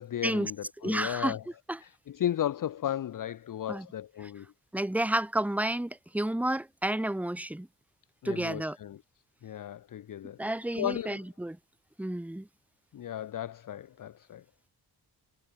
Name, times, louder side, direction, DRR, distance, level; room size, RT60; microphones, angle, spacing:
voice 1, 0.0-1.4 1.8-4.5 8.2-9.0 9.4-11.2 12.9-14.4, left 11 dB, 50° left, 0.6 m, -35 dB
voice 2, 0.8-1.4 1.7-1.8 3.7-3.9 4.7-7.7 8.2-8.8 10.4-11.6 12.0-12.5, right 1 dB, 5° right, 1.0 m, -31 dB
wide cardioid pair, 170°, 41 cm